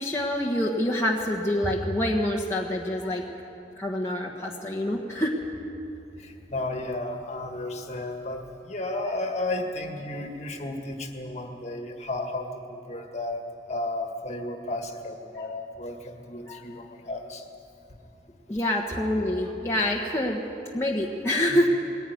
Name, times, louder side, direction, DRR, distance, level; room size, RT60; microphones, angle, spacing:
voice 1, 0.0-3.2 3.8-5.3 15.4-15.5 16.5-16.6 18.5-20.4 20.7-21.7, left 1 dB, 15° left, -2 dB, 1.3 m, -26 dB
voice 2, 6.2-13.4 13.7-17.5 21.5-21.6, left 2 dB, 40° left, 4 dB, 1.8 m, -33 dB
21.0 x 16.0 x 9.5 m, 2.9 s
head